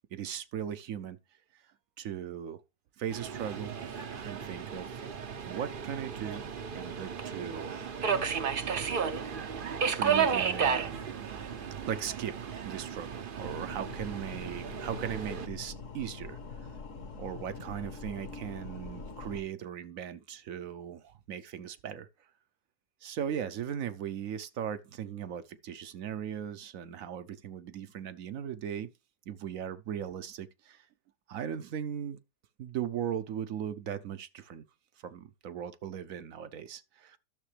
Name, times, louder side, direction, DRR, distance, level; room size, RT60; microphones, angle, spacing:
voice 1, 0.1-1.2 2.0-2.6 3.0-3.8 4.2-5.1 5.4-6.4 6.7-7.8 8.1-8.3 10.0-11.2 11.9-16.6 17.2-22.1 23.0-28.9 29.3-30.9 31.3-32.2 32.6-34.6 35.0-37.2, right 9 dB, 65° right, 1.0 m, -38 dB
Subway metro underground, 3.1-15.5, right 6 dB, 45° right, 0.7 m, -33 dB
sound 1, 13.4-19.4, left 4 dB, 50° left, 1.4 m, -44 dB
12.5 x 6.7 x 3.3 m
omnidirectional pair, 1.8 m